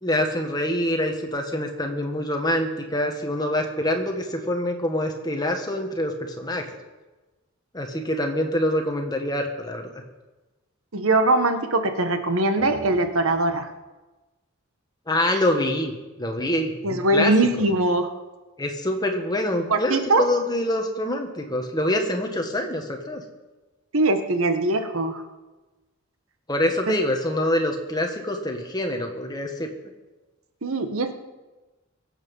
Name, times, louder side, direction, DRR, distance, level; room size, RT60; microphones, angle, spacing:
voice 1, 0.0-6.6 7.7-9.9 15.1-15.9 16.2-17.3 17.6-17.7 18.6-23.2 26.5-29.7, left 1 dB, 20° left, 3 dB, 1.6 m, -25 dB
voice 2, 10.9-13.7 16.8-18.1 19.7-20.2 23.9-25.2 26.9-27.0 30.6-31.1, right 2 dB, 75° right, 8 dB, 1.3 m, -21 dB
23.0 x 8.2 x 5.5 m, 1.2 s
head